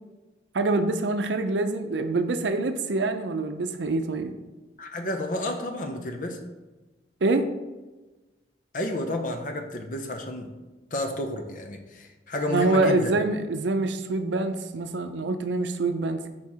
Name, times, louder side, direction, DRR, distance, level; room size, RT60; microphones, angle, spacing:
voice 1, 0.5-4.3 7.2-7.5 12.5-16.3, right 2 dB, 85° right, 8 dB, 0.5 m, -25 dB
voice 2, 4.8-6.4 8.7-10.5 10.9-13.1, left 1 dB, 50° left, 4 dB, 0.7 m, -31 dB
4.4 x 4.4 x 4.8 m, 1.2 s
head